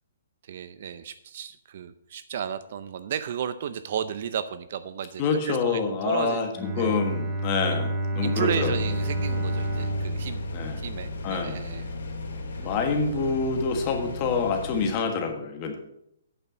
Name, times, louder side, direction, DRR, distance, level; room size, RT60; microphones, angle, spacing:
voice 1, 0.4-7.0 8.2-10.4 10.8-11.9, right 8 dB, 45° right, 13 dB, 0.5 m, -33 dB
voice 2, 5.2-6.5 6.8-8.7 10.5-10.8 11.2-11.6 12.6-15.8, left 5 dB, 25° left, 4 dB, 1.4 m, -27 dB
Bowed string instrument, 6.5-11.5, right 1 dB, 10° right, 1.1 m, -30 dB
sound 1, 8.5-14.9, left 2 dB, 70° left, 2.6 m, -36 dB
8.7 x 6.6 x 6.1 m, 0.77 s
hypercardioid pair, 170°, 0 cm